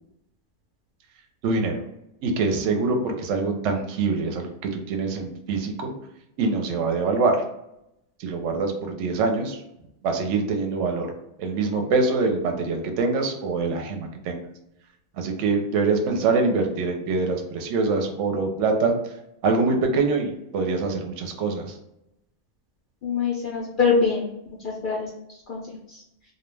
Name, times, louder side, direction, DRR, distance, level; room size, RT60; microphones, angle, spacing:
voice 1, 1.4-1.8 2.2-5.9 6.4-7.4 8.2-9.6 10.0-11.1 11.4-14.4 15.2-18.9 19.4-21.8, right 3 dB, 70° right, 4 dB, 0.8 m, -24 dB
voice 2, 23.0-24.3 24.6-25.1 25.5-26.0, left 5 dB, 65° left, -3 dB, 0.5 m, -24 dB
2.3 x 2.1 x 3.2 m, 0.83 s
omnidirectional pair, 1.4 m